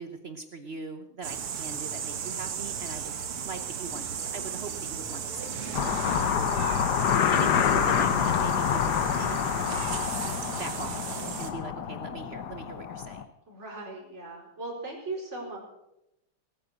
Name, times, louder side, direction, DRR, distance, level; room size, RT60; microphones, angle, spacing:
voice 1, 0.0-3.1 3.4-6.1 7.3-9.8 10.6-13.2, right 4 dB, 60° right, 7 dB, 0.6 m, -41 dB
sound 1, 1.2-11.5, right 7 dB, 80° right, 2.2 m, -35 dB
sound 2, 5.7-13.2, left 8 dB, 60° left, 1.3 m, -27 dB
voice 2, 6.4-7.5 13.5-15.6, right 2 dB, 30° right, -2 dB, 4.8 m, -39 dB
19.5 x 9.4 x 6.6 m, 0.88 s
omnidirectional pair, 2.4 m